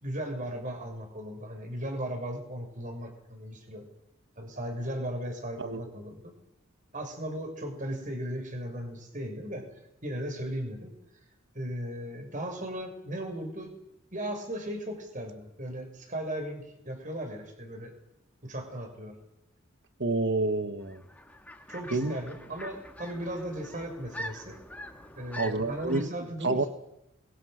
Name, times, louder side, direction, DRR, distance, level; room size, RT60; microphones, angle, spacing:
voice 1, 0.0-3.8 4.4-6.3 6.9-9.7 10.0-10.9 11.5-13.7 14.1-17.9 18.4-19.2 21.7-24.6 25.2-26.7, right 1 dB, 40° right, 4 dB, 6.3 m, -36 dB
voice 2, 20.0-21.0 21.9-22.2 25.4-26.6, right 2 dB, 60° right, 10 dB, 1.7 m, -29 dB
sound 1, 20.8-26.1, left 1 dB, 10° left, 2.1 m, -44 dB
28.5 x 22.5 x 6.7 m, 0.85 s
head